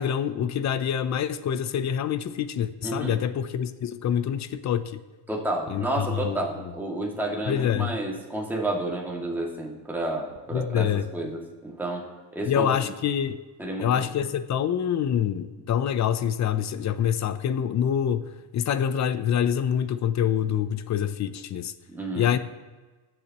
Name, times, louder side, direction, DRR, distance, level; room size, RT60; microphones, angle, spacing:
voice 1, 0.0-5.0 5.7-6.7 7.5-7.9 10.5-11.0 12.5-13.4 13.8-21.7 22.2-22.4, left 9 dB, 40° left, 13 dB, 0.6 m, -26 dB
voice 2, 2.8-3.2 5.3-12.9 13.6-14.0 21.9-22.3, right 1 dB, 5° right, -3 dB, 2.2 m, -31 dB
18.5 x 7.5 x 3.0 m, 1.3 s
cardioid pair, 110°, 46 cm